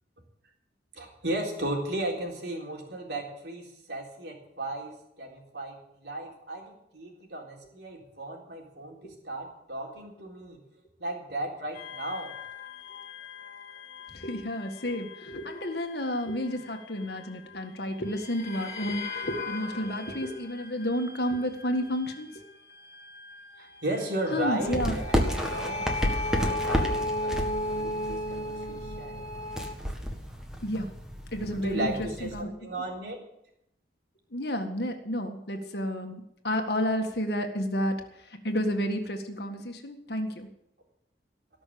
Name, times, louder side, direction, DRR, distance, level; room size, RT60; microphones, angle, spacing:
voice 1, 0.9-10.6 11.0-12.4 23.6-25.9 26.3-29.3 31.5-33.2, right 1 dB, 65° right, 0 dB, 3.8 m, -35 dB
sound 1, 11.7-17.7 18.1-29.7, left 1 dB, 40° left, 2.3 m, -37 dB
voice 2, 14.1-22.4 24.3-25.0 30.6-30.9 31.3-32.5 34.3-40.5, equal, 60° left, 5 dB, 1.8 m, -31 dB
sound 2, 24.6-32.4, equal, 5° right, 1.8 m, -32 dB
18.5 x 6.4 x 8.7 m, 0.80 s
head